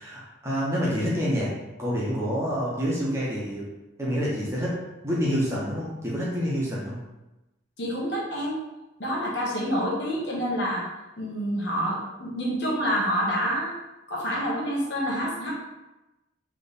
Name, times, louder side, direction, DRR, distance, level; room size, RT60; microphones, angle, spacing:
voice 1, 0.0-1.5 1.8-3.7 4.0-4.8 5.0-7.0, equal, 15° right, -6 dB, 1.0 m, -27 dB
voice 2, 7.8-8.6 9.0-10.9 11.2-13.7 14.1-15.5, equal, 60° left, -4 dB, 1.2 m, -27 dB
3.5 x 3.1 x 4.1 m, 1.0 s
head